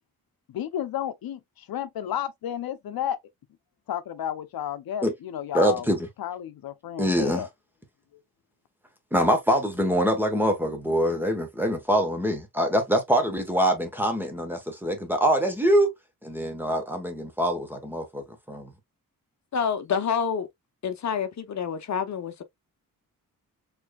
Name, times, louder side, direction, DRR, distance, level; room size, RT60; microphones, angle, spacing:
voice 1, 0.5-1.4 1.7-3.2 3.9-5.9 6.2-7.5, left 10 dB, 90° left, 0.7 m, -32 dB
voice 2, 5.5-6.1 7.0-7.5 9.1-15.9 16.2-18.7, equal, 5° right, 1.0 m, -24 dB
voice 3, 19.5-20.5 20.8-22.4, left 7 dB, 55° left, 0.7 m, -27 dB
4.4 x 3.3 x 2.3 m
wide cardioid pair, 150°, 35 cm